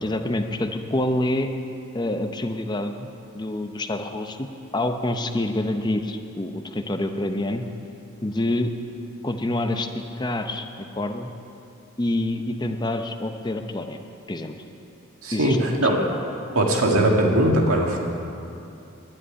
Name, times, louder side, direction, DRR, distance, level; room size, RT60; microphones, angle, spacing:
voice 1, 0.0-1.5 1.9-3.1 3.3-4.5 4.7-7.7 8.2-8.7 9.2-9.9 10.2-10.7 11.0-11.3 12.0-14.0 14.3-14.5 15.3-15.6 15.8-16.2, left 1 dB, 20° left, 6 dB, 0.6 m, -27 dB
voice 2, 15.2-16.0 16.6-18.0, right 1 dB, 85° right, 0 dB, 1.9 m, -20 dB
11.0 x 8.8 x 9.8 m, 2.6 s
head